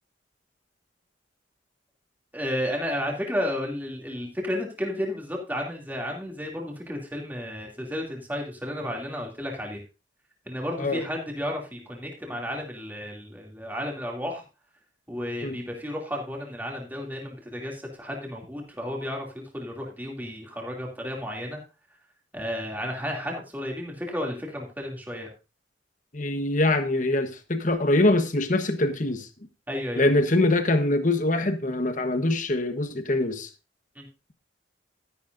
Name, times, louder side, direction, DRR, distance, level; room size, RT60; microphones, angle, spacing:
voice 1, 2.3-9.8 10.4-14.4 15.1-21.6 22.3-25.3 29.7-30.1 34.0-34.1, equal, 10° right, 2.6 m, -32 dB
voice 2, 26.1-29.3 30.0-33.5, left 2 dB, 40° left, 1.2 m, -23 dB
12.5 x 10.5 x 2.6 m
head